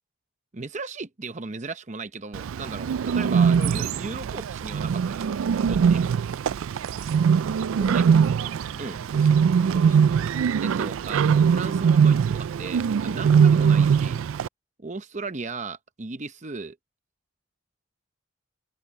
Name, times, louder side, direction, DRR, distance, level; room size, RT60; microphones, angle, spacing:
voice 1, 0.5-5.4 5.6-6.1 7.9-8.1 8.8-9.0 10.6-14.2 14.8-16.8, right 3 dB, 35° right, 0.8 m, -36 dB
Bird, 2.3-14.5, right 6 dB, 80° right, 0.3 m, -21 dB
voice 2, 3.5-3.9 7.8-10.3, left 1 dB, 40° left, 2.5 m, -44 dB
head